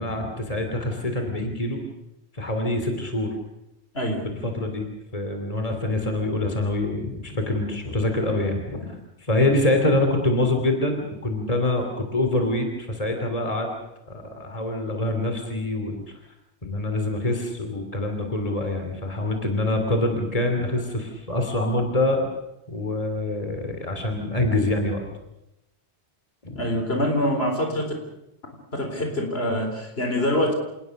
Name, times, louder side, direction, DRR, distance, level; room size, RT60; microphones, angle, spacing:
voice 1, 0.0-1.8 2.3-3.3 4.4-4.9 5.1-8.9 9.2-13.7 14.1-16.1 16.6-22.3 22.7-25.1 26.4-26.7, left 1 dB, 35° left, 4 dB, 3.2 m, -25 dB
voice 2, 3.9-4.3 26.5-27.9 28.7-30.5, left 1 dB, 65° left, 4 dB, 4.4 m, -25 dB
27.5 x 19.5 x 6.6 m, 0.88 s
omnidirectional pair, 1.1 m